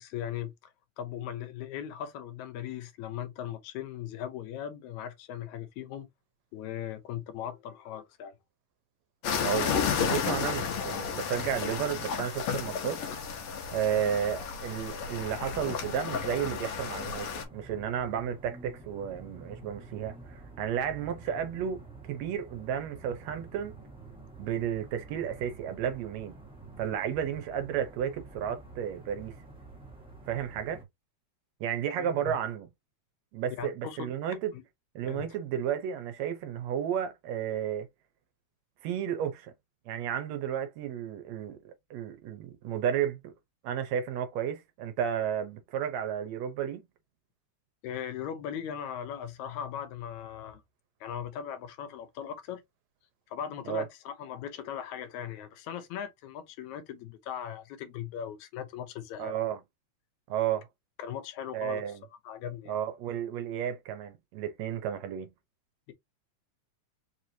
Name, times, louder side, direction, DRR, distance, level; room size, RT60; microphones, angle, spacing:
voice 1, 0.0-6.1 6.5-8.3 9.5-9.6 32.0-32.4 33.6-34.1 34.5-34.6 35.1-35.3 47.8-50.6 51.0-52.6 53.3-59.3 61.0-61.8 62.2-62.8, left 9 dB, 80° left, 2.1 m, -39 dB
sound 1, 9.2-17.4, left 6 dB, 60° left, 1.7 m, -32 dB
voice 2, 9.4-13.0 13.7-23.7 24.4-26.4 26.8-29.3 30.3-30.8 31.6-32.7 33.3-34.5 35.0-37.9 38.8-39.5 39.9-43.3 43.6-46.8 53.7-53.9 59.2-59.6 60.3-60.7 61.5-62.0 62.7-65.3, right 9 dB, 75° right, 1.8 m, -32 dB
sound 2, 17.3-30.8, right 3 dB, 5° right, 0.6 m, -49 dB
4.8 x 3.0 x 2.6 m
omnidirectional pair, 3.3 m